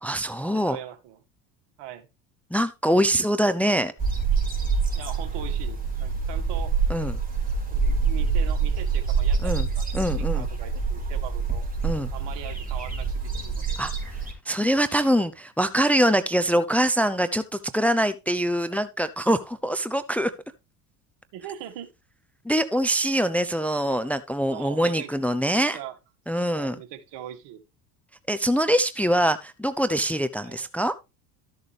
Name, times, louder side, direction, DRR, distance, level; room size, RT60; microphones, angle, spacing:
voice 1, 0.0-0.8 2.5-3.9 6.9-7.1 9.4-9.7 9.9-10.5 11.8-12.1 13.8-14.1 14.5-20.3 22.4-25.8 26.3-26.8 28.3-30.9, equal, 5° left, 0.8 m, -24 dB
voice 2, 0.5-1.2 1.8-2.1 5.0-6.7 7.7-9.9 10.2-11.6 12.1-13.8 18.6-18.8 21.3-21.9 24.5-25.1 25.4-26.0 26.6-27.6 30.4-30.7, right 11 dB, 60° right, 2.1 m, -41 dB
sound 1, 4.0-14.3, right 5 dB, 15° right, 4.7 m, -26 dB
13.0 x 6.9 x 3.5 m
hypercardioid pair, 75°, 48 cm